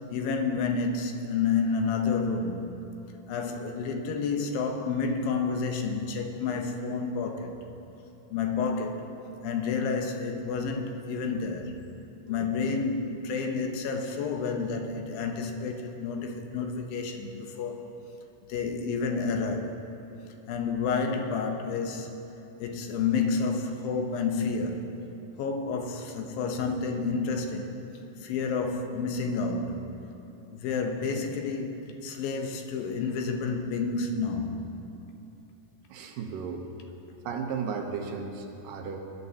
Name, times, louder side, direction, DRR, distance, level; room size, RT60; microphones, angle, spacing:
voice 1, 0.1-2.7 3.3-7.6 8.3-9.1 9.4-11.8 12.3-17.9 18.5-19.8 20.5-22.1 22.6-25.0 25.4-27.8 28.2-30.0 30.5-34.8, left 4 dB, 90° left, 4 dB, 2.7 m, -30 dB
voice 2, 35.9-36.7 37.3-39.0, right 6 dB, 75° right, 3 dB, 2.4 m, -35 dB
20.5 x 11.0 x 2.8 m, 2.9 s
omnidirectional pair, 4.0 m